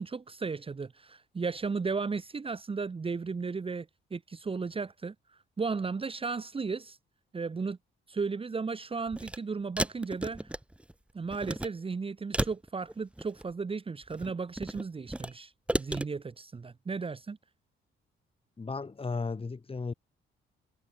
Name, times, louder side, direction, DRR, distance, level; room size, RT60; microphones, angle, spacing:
voice 1, 0.0-5.1 5.6-7.0 7.3-7.8 8.1-10.4 11.1-15.5 15.8-17.4, right 4 dB, 25° right, 1.4 m, -35 dB
sound 1, 9.1-9.4 9.8-10.9 11.3-11.7 12.3-13.5 14.0-15.3 15.7-16.1, right 1 dB, 5° right, 1.1 m, -33 dB
voice 2, 18.6-19.9, left 4 dB, 30° left, 4.5 m, -35 dB
cardioid pair, 90°, 20 cm